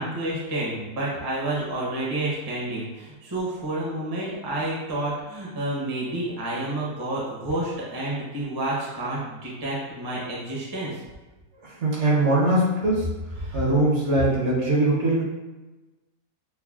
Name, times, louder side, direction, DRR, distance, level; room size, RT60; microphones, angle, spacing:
voice 1, 0.0-11.0 13.4-13.6, right 1 dB, 25° right, -5 dB, 0.5 m, -29 dB
voice 2, 11.6-13.1 13.5-15.2, right 1 dB, 55° right, -4 dB, 1.0 m, -21 dB
5.6 x 2.1 x 2.3 m, 1.2 s
omnidirectional pair, 1.5 m